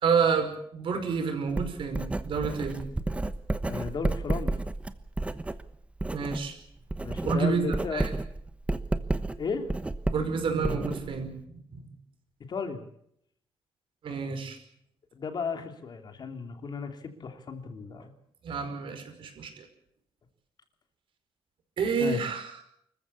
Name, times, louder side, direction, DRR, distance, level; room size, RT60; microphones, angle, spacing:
voice 1, 0.0-2.8 6.1-6.5 7.2-7.6 7.9-8.1 10.1-11.9 14.0-14.6 18.4-19.7 21.8-22.5, right 5 dB, 60° right, 7 dB, 5.1 m, -29 dB
Writing, 1.5-6.5 6.8-11.4, right 2 dB, 10° right, 1.1 m, -31 dB
voice 2, 3.7-4.7 7.0-8.0 9.4-9.7 12.5-12.9 15.1-18.1 22.0-22.2, left 5 dB, 45° left, 6 dB, 3.1 m, -34 dB
25.5 x 15.0 x 8.4 m, 0.71 s
cardioid pair, 130°, 10 cm